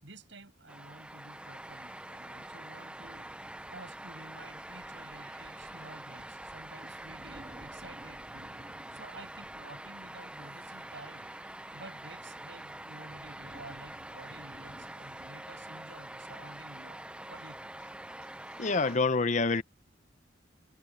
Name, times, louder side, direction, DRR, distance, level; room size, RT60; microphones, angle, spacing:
voice 1, 0.0-3.3 3.7-8.5 8.9-11.3 11.7-17.0 17.3-17.9 18.2-18.3, right 2 dB, 70° right, 7.0 m, -51 dB
sound 1, 0.7-19.0, right 1 dB, 5° right, 0.5 m, -45 dB
sound 2, 3.0-15.6, right 1 dB, 30° right, 1.7 m, -57 dB
voice 2, 18.6-19.6, left 3 dB, 40° left, 0.7 m, -26 dB
head